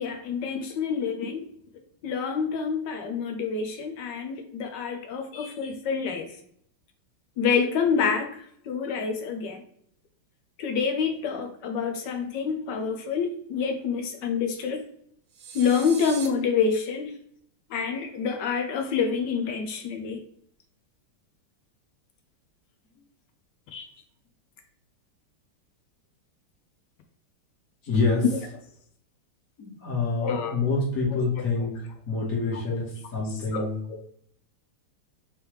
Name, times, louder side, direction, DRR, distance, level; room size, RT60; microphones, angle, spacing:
voice 1, 0.0-1.5 2.0-6.3 7.4-9.6 10.6-14.8 15.5-17.1 17.7-20.2 23.7-23.9 30.2-30.6 33.5-34.0, left 6 dB, 75° left, 5 dB, 1.0 m, -27 dB
sound 1, 15.3-16.3, right 6 dB, 75° right, 1.6 m, -39 dB
voice 2, 27.8-28.2 29.6-33.8, left 3 dB, 45° left, -5 dB, 1.8 m, -27 dB
4.5 x 3.3 x 3.1 m, 0.68 s
omnidirectional pair, 2.3 m